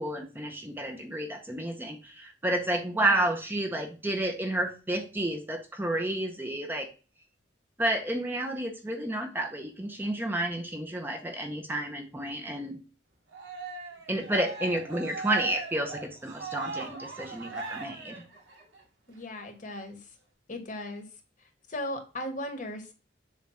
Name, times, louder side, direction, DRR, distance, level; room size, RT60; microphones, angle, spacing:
voice 1, 0.0-6.9 7.8-12.8 14.1-18.2, right 1 dB, 10° right, 2 dB, 0.7 m, -31 dB
Cheering, 13.3-18.8, right 4 dB, 75° right, 1.6 m, -39 dB
voice 2, 19.1-20.1 20.5-21.1 21.7-22.9, left 1 dB, 40° left, 5 dB, 1.2 m, -37 dB
7.3 x 2.5 x 5.6 m, 0.34 s
head